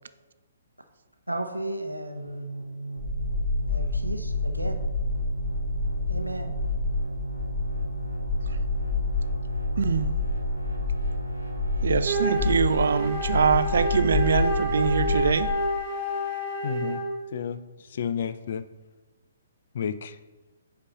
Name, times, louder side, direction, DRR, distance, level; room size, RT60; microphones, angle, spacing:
voice 1, 1.3-2.5 3.7-4.8 6.1-6.6, right 1 dB, 85° right, 6 dB, 0.7 m, -34 dB
sound 1, 2.1-13.2, right 2 dB, 90° left, 1.3 m, -36 dB
sound 2, 3.0-15.5, left 3 dB, ahead, 0.9 m, -29 dB
voice 2, 9.8-10.1 11.8-15.5, right 6 dB, 55° right, 13 dB, 0.3 m, -24 dB
Wind instrument woodwind instrument, 12.0-17.2, right 1 dB, 25° right, 0.9 m, -29 dB
voice 3, 16.6-17.0 17.3-18.6 19.7-20.2, left 7 dB, 45° left, 12 dB, 0.3 m, -31 dB
8.0 x 5.1 x 2.8 m, 1.2 s
figure-of-eight pair, 125°, 0 cm